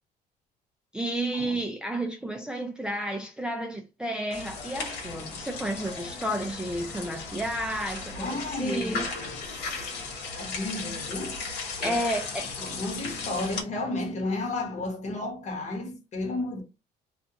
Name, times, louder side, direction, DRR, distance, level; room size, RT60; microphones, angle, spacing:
voice 1, 0.9-9.1 11.8-12.5, right 1 dB, 5° right, 0.4 m, -31 dB
sound 1, 4.3-13.6, left 4 dB, 80° left, 1.0 m, -36 dB
voice 2, 8.2-9.4 10.3-11.4 11.8-12.0 12.6-16.6, left 2 dB, 45° left, 1.1 m, -33 dB
2.5 x 2.4 x 2.7 m
cardioid pair, 110°, 17 cm